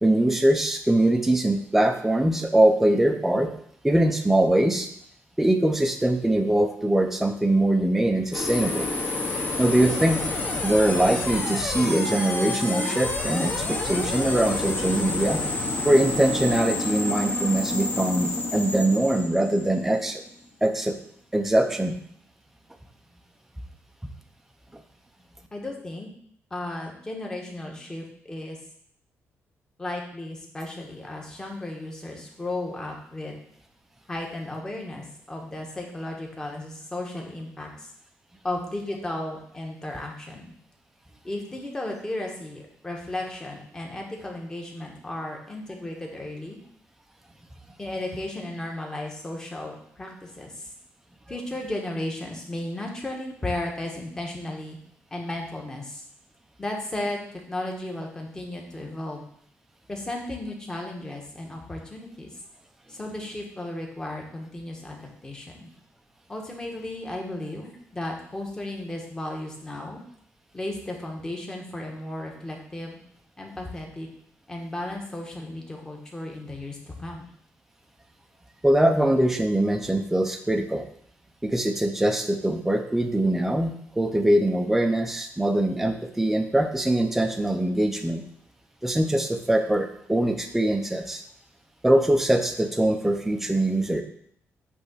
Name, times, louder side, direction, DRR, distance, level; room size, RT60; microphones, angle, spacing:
voice 1, 0.0-3.5 3.8-4.9 5.4-8.9 9.6-10.2 10.6-15.4 15.8-20.2 20.6-20.9 21.3-21.9 78.6-80.8 81.4-88.2 88.8-91.2 91.8-94.0, right 1 dB, 5° right, 4 dB, 0.6 m, -22 dB
sound 1, 8.3-20.3, left 2 dB, 35° left, 1.2 m, -29 dB
voice 2, 25.5-26.1 26.5-28.6 29.8-33.4 34.1-37.9 38.4-40.5 41.2-46.6 47.8-50.7 51.3-54.8 55.1-56.0 56.6-59.2 59.9-62.3 62.9-65.7 66.3-70.0 70.5-73.0 73.4-74.1 74.5-77.2, left 1 dB, 15° left, 0 dB, 1.3 m, -34 dB
8.5 x 3.4 x 6.3 m, 0.66 s
wide cardioid pair, 170°, 5 cm